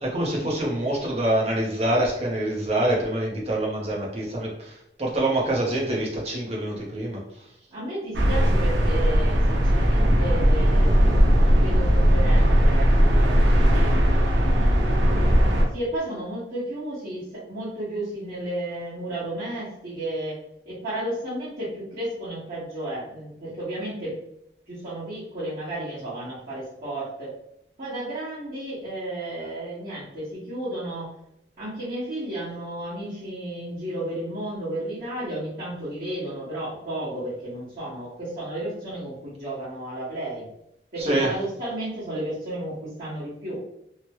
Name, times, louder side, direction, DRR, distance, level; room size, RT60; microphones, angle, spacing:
voice 1, 0.0-7.2 41.0-41.3, right 1 dB, 35° right, -2 dB, 0.8 m, -25 dB
voice 2, 7.7-14.9 15.7-24.1 24.7-27.3 27.8-31.1 31.6-40.5 40.9-43.6, right 1 dB, 50° right, -13 dB, 1.4 m, -33 dB
sound 1, 8.1-15.6, equal, 85° right, 0.6 m, -18 dB
3.1 x 2.1 x 3.0 m, 0.78 s
head